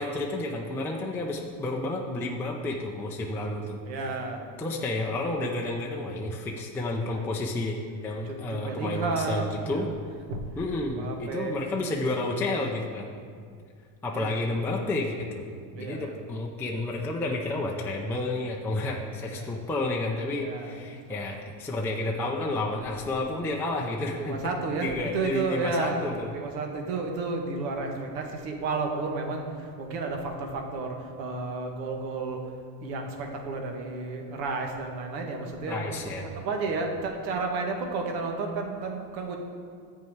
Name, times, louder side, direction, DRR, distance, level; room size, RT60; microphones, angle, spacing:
voice 1, 0.0-3.8 4.6-9.9 10.6-13.1 14.0-15.5 15.8-24.4 24.8-26.3 35.7-36.3, left 2 dB, 5° left, -1 dB, 0.4 m, -31 dB
voice 2, 3.9-4.4 7.0-7.3 8.2-9.8 10.3-10.4 11.0-11.6 14.1-14.4 15.7-16.1 19.3-19.6 20.4-21.4 24.2-26.0 26.3-32.4 32.8-35.8 36.3-39.4, right 3 dB, 85° right, 2 dB, 1.7 m, -32 dB
10.5 x 4.7 x 7.9 m, 2.1 s
supercardioid pair, 135°, 50 cm